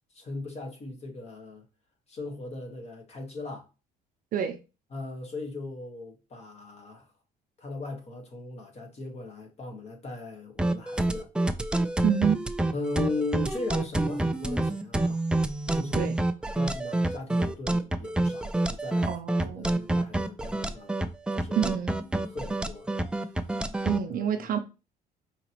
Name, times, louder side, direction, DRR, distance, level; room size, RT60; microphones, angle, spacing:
voice 1, 0.1-1.7 2.1-3.7 4.9-7.1 7.6-11.3 12.7-15.2 15.7-16.1 16.6-19.2 19.5-20.9 21.3-21.7 22.2-22.9 24.1-24.6, left 3 dB, 40° left, 1.3 m, -38 dB
sound 1, 10.6-24.0, right 2 dB, 5° right, 0.3 m, -27 dB
voice 2, 12.0-12.4 15.9-16.1 19.0-19.7 21.6-22.0 23.8-24.6, right 8 dB, 55° right, 0.5 m, -27 dB
4.9 x 2.9 x 2.9 m
cardioid pair, 110°, 17 cm